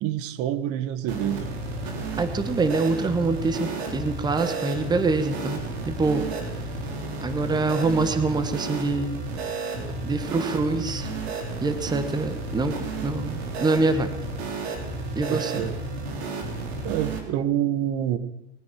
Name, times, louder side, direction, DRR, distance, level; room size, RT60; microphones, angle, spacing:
voice 1, 0.0-1.5 15.3-15.8 16.8-18.2, right 11 dB, 45° right, 15 dB, 1.3 m, -27 dB
sound 1, 1.1-17.2, right 3 dB, 65° right, 3.7 m, -32 dB
voice 2, 2.2-6.3 7.2-9.1 10.0-11.1 11.6-14.1 15.1-15.5, right 3 dB, 10° right, 10 dB, 1.2 m, -25 dB
20.5 x 9.4 x 5.9 m, 0.88 s
hypercardioid pair, 115°, 34 cm